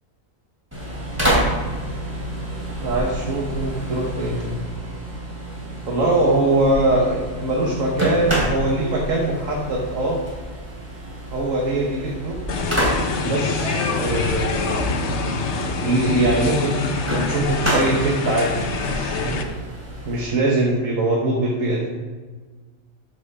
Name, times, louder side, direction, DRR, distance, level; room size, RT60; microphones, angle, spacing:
sound 1, 0.7-20.3, right 1 dB, 10° right, 2.8 m, -29 dB
voice 1, 2.8-4.6 5.9-10.2 11.3-12.4 13.2-14.9 15.8-19.5 20.0-21.9, right 2 dB, 70° right, -2 dB, 1.6 m, -22 dB
sound 2, 12.5-19.4, left 4 dB, 60° left, 1.1 m, -25 dB
13.0 x 5.1 x 4.9 m, 1.4 s
omnidirectional pair, 1.4 m